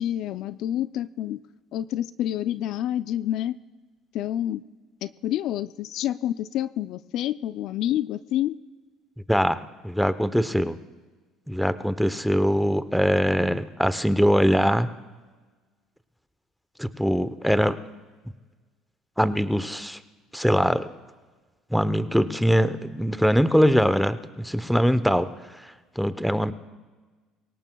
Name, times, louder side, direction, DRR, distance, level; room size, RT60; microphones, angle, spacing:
voice 1, 0.0-1.4 1.7-3.6 4.1-4.6 5.0-8.6, left 12 dB, 65° left, 14 dB, 0.4 m, -28 dB
voice 2, 9.3-10.8 11.5-14.9 16.8-17.8 19.2-20.0 20.3-20.9 21.7-25.3 25.6-26.5, equal, ahead, 13 dB, 0.8 m, -22 dB
25.5 x 17.5 x 2.3 m, 1.3 s
supercardioid pair, 85°, 0 cm